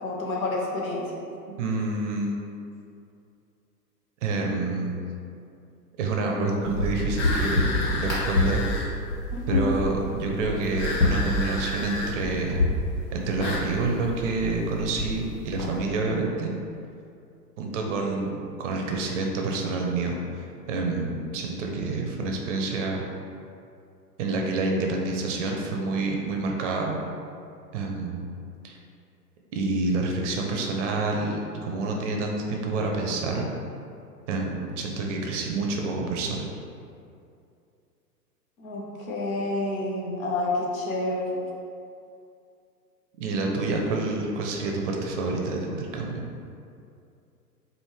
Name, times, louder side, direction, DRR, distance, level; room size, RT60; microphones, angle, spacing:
voice 1, 0.0-1.1 9.3-9.7 38.6-41.4, left 2 dB, 55° left, -3 dB, 1.1 m, -29 dB
voice 2, 1.6-2.4 4.2-5.0 6.0-8.6 9.5-12.6 13.1-16.5 17.6-20.2 20.7-23.0 24.2-27.0 27.7-28.2 28.6-28.8 29.5-33.5 34.3-36.5 43.2-46.2, right 3 dB, 50° right, 1 dB, 0.6 m, -28 dB
sound 1, 6.6-15.8, left 1 dB, 90° left, 1.4 m, -28 dB
sound 2, 7.2-8.9 10.8-12.2 13.4-13.7, left 2 dB, 25° left, 0.5 m, -31 dB
4.8 x 2.5 x 3.2 m, 2.5 s
hypercardioid pair, 110°, 49 cm